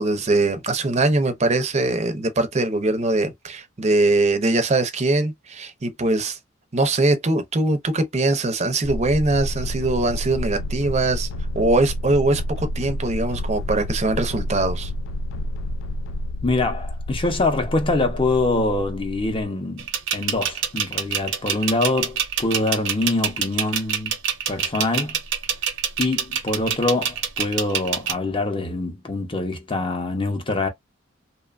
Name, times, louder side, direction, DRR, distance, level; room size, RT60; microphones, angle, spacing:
voice 1, 0.0-6.4 6.7-11.3 11.5-14.9, right 2 dB, 35° right, 0.6 m, -22 dB
sound 1, 8.8-19.5, left 1 dB, 75° left, 0.3 m, -29 dB
voice 2, 16.4-24.1 24.5-25.2 26.0-30.7, left 2 dB, 25° left, 0.6 m, -24 dB
sound 2, 19.8-28.1, right 8 dB, 75° right, 0.7 m, -25 dB
2.8 x 2.2 x 2.4 m
head